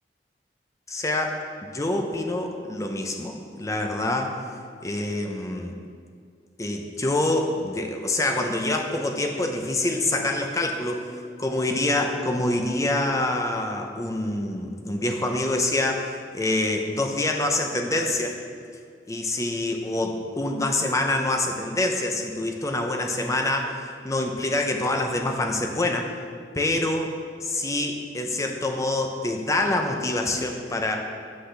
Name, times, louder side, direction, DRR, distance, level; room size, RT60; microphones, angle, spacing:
voice 1, 0.9-1.4 1.6-4.4 4.8-5.7 6.6-11.1 11.4-18.4 19.1-26.1 26.5-27.1 27.4-31.0, left 2 dB, 20° left, 3 dB, 0.6 m, -26 dB
7.9 x 5.8 x 3.3 m, 2.2 s
head